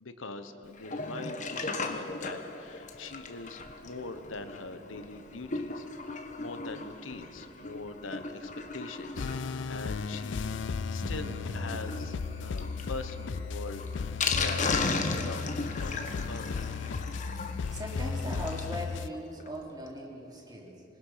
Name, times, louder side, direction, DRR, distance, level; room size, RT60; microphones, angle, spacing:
voice 1, 0.0-10.6 10.9-12.2 12.4-16.5, left 3 dB, 85° left, 9 dB, 1.2 m, -43 dB
Sink (filling or washing), 0.7-18.8 19.1-19.2 19.4-19.5 19.9-20.0, left 3 dB, 40° left, 1.3 m, -37 dB
sound 1, 9.2-19.1, left 5 dB, 65° left, 0.4 m, -35 dB
Bass guitar, 11.0-17.3, right 1 dB, 55° right, 2.3 m, -48 dB
voice 2, 17.5-20.8, equal, 20° right, -1 dB, 3.1 m, -40 dB
27.0 x 21.0 x 5.9 m, 2.8 s
head